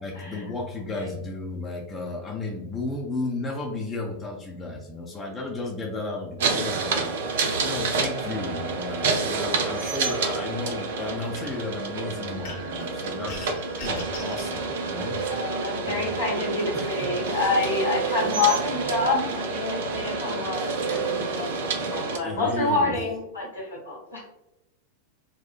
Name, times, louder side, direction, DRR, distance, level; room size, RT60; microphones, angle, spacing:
voice 1, 0.0-7.1 7.6-13.5 13.8-15.2 15.8-16.0 16.7-17.1 18.3-18.4 21.9-22.9, left 2 dB, 20° left, -1 dB, 0.5 m, -33 dB
sound 1, 6.4-22.2, right 4 dB, 55° right, 0.4 m, -28 dB
sound 2, 12.4-12.8 13.3-14.5, left 2 dB, 50° left, 0.8 m, -40 dB
voice 2, 15.3-24.3, left 3 dB, 80° left, -4 dB, 1.3 m, -27 dB
4.2 x 2.1 x 2.4 m, 0.90 s
figure-of-eight pair, 90°, 0 cm